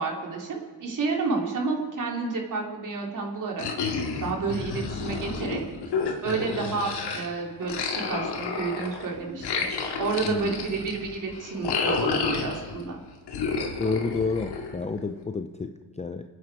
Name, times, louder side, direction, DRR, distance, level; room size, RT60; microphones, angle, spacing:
voice 1, 0.0-3.7 4.2-5.6 6.2-9.7 10.0-13.0, right 4 dB, 45° right, 0 dB, 3.4 m, -30 dB
sound 1, 3.6-7.3 7.6-12.8 13.3-15.0, left 4 dB, 60° left, 2.5 m, -30 dB
voice 2, 13.8-16.2, left 4 dB, 15° left, 7 dB, 0.6 m, -30 dB
26.5 x 9.7 x 4.9 m, 1.4 s
cardioid pair, 110°, 44 cm